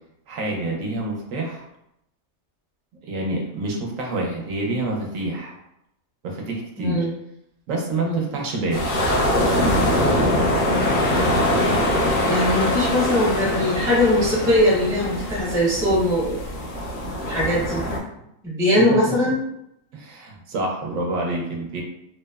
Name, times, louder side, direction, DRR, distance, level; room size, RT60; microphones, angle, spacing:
voice 1, 0.3-1.7 3.0-5.5 6.2-7.1 7.7-8.8 18.9-19.1 19.9-21.8, right 2 dB, 75° right, -1 dB, 1.0 m, -27 dB
voice 2, 6.8-7.1 8.0-8.3 12.3-16.4 17.3-17.8 18.4-19.4, left 1 dB, 5° right, -6 dB, 0.4 m, -21 dB
sound 1, 8.7-18.0, left 1 dB, 75° left, 1.0 m, -22 dB
2.9 x 2.0 x 2.2 m, 0.80 s
omnidirectional pair, 1.4 m